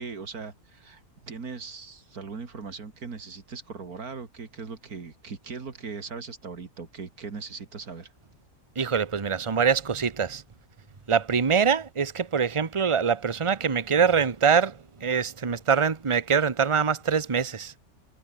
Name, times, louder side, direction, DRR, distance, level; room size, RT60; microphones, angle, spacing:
voice 1, 0.0-8.1, right 5 dB, 80° right, 2.9 m, -39 dB
voice 2, 8.8-10.4 11.1-17.7, right 6 dB, 25° right, 1.0 m, -24 dB
omnidirectional pair, 1.5 m